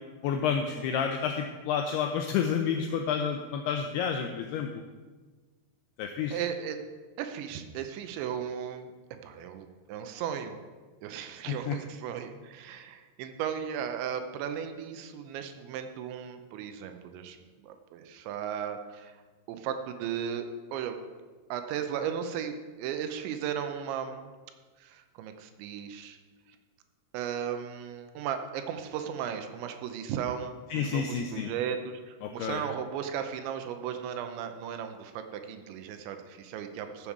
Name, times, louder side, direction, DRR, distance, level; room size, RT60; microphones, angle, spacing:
voice 1, 0.2-4.7 6.0-6.4 11.5-11.8 30.7-31.5 32.2-32.6, left 7 dB, 90° left, 4 dB, 2.3 m, -30 dB
voice 2, 6.3-6.8 7.2-8.9 9.2-10.6 11.0-19.2 19.5-20.5 20.7-21.0 21.5-24.3 24.8-26.2 27.1-37.1, right 8 dB, 85° right, 7 dB, 3.0 m, -36 dB
14.5 x 7.2 x 4.8 m, 1.4 s
omnidirectional pair, 5.4 m